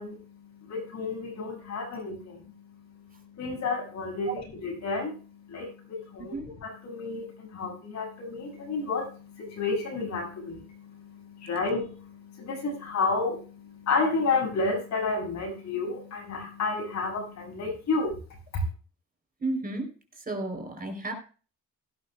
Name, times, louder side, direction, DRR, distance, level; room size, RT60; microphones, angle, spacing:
voice 1, 0.0-4.3 4.6-6.3 6.6-18.2 18.5-18.6, left 3 dB, 65° left, 1 dB, 6.7 m, -31 dB
voice 2, 19.4-19.9 20.2-21.1, right 2 dB, 30° right, 4 dB, 3.8 m, -32 dB
16.5 x 12.0 x 2.3 m, 0.38 s
cardioid pair, 90°, 30 cm